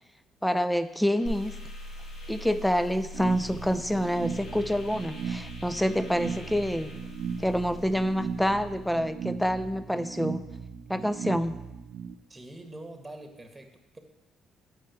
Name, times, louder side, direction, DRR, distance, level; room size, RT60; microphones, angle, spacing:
voice 1, 0.4-1.6 2.3-6.9 7.4-10.5 10.9-11.6, equal, 5° left, 11 dB, 0.6 m, -27 dB
sound 1, 0.9-7.6, left 2 dB, 55° left, 2.1 m, -51 dB
sound 2, 1.2-9.1, left 1 dB, 80° left, 2.2 m, -43 dB
sound 3, 3.1-12.1, right 6 dB, 70° right, 0.7 m, -37 dB
voice 2, 12.3-14.0, right 1 dB, 15° right, 5 dB, 1.7 m, -44 dB
8.7 x 5.7 x 7.7 m, 0.95 s
cardioid pair, 95°, 0 cm